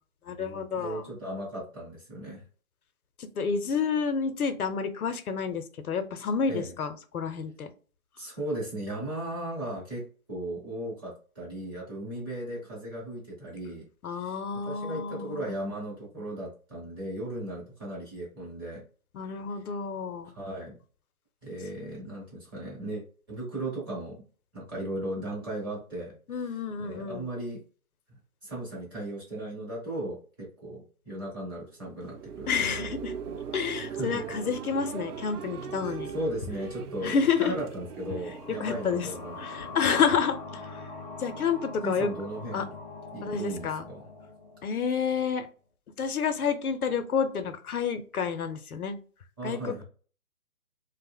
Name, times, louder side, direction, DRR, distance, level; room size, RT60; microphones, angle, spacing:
voice 1, 0.3-1.0 3.2-7.7 14.0-15.6 19.1-20.3 26.3-27.3 32.5-33.2 33.5-36.1 37.0-37.5 38.6-40.7 41.2-42.1 42.5-42.6 43.2-43.9 44.6-45.5 46.0-49.0 49.4-49.8, left 6 dB, 80° left, 9 dB, 0.6 m, -29 dB
voice 2, 0.8-2.4 6.5-6.7 8.2-13.8 14.2-18.8 20.3-20.8 21.4-24.2 24.5-27.6 28.4-32.5 32.8-32.9 33.3-33.4 34.0-34.1 36.1-40.0 41.8-42.7 43.1-44.1 49.4-49.8, right 1 dB, 15° right, -6 dB, 0.7 m, -36 dB
sound 1, 31.8-40.4, right 7 dB, 85° right, 0.5 m, -40 dB
sound 2, 37.8-45.2, left 3 dB, 30° left, 0.4 m, -43 dB
2.4 x 2.1 x 3.4 m, 0.40 s
figure-of-eight pair, 145°, 44 cm